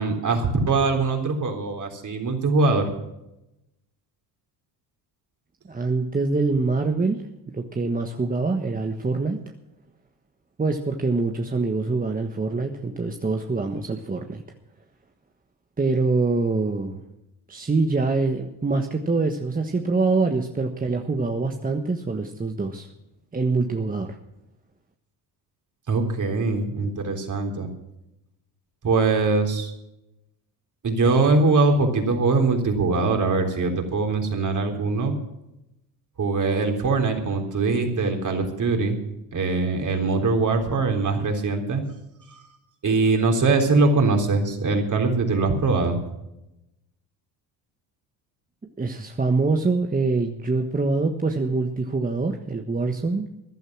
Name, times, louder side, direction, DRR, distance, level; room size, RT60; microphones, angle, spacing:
voice 1, 0.0-2.9 25.9-27.7 28.8-29.7 30.8-35.2 36.2-39.0 39.3-41.8 42.8-46.0, right 3 dB, 40° right, 3 dB, 3.7 m, -22 dB
voice 2, 5.6-7.2 7.5-9.4 10.6-14.4 15.8-17.0 17.5-22.9 23.3-24.2 48.8-53.3, right 3 dB, 20° right, 4 dB, 1.3 m, -24 dB
15.0 x 11.0 x 6.0 m, 0.89 s
supercardioid pair, 80°, 46 cm